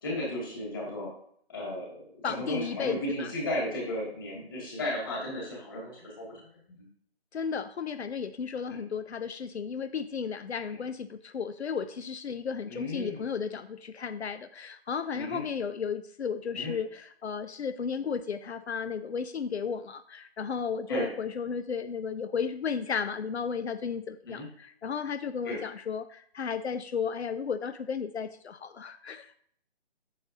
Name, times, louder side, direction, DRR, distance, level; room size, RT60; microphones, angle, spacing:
voice 1, 0.0-1.1 1.5-2.0 2.3-6.4 8.7-8.8 12.7-13.2 15.1-15.4 16.5-16.7 20.9-21.1 24.3-24.5 25.4-25.6, left 1 dB, 20° left, -4 dB, 2.2 m, -34 dB
voice 2, 2.2-3.3 7.3-29.3, left 6 dB, 85° left, 11 dB, 0.6 m, -34 dB
8.4 x 7.2 x 2.7 m, 0.63 s
hypercardioid pair, 175°, 32 cm